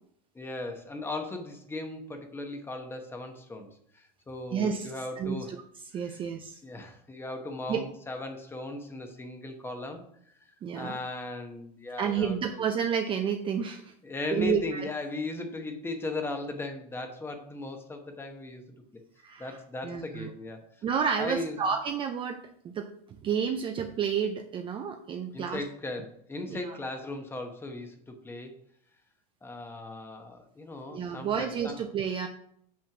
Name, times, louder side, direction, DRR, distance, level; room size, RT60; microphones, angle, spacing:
voice 1, 0.3-3.7 3.9-5.5 5.9-6.2 6.6-10.3 10.7-12.6 14.0-18.6 19.4-20.6 21.2-21.5 25.3-28.5 29.4-31.8, left 2 dB, 10° left, 5 dB, 0.9 m, -37 dB
voice 2, 4.5-4.9 5.2-5.4 5.9-6.6 7.7-7.8 10.6-11.0 12.0-13.9 14.3-14.9 19.2-19.6 19.8-20.3 20.8-22.9 23.2-25.6 26.5-26.8 30.9-32.3, right 7 dB, 25° right, 6 dB, 0.5 m, -30 dB
5.9 x 4.3 x 5.9 m, 0.68 s
supercardioid pair, 130°, 21 cm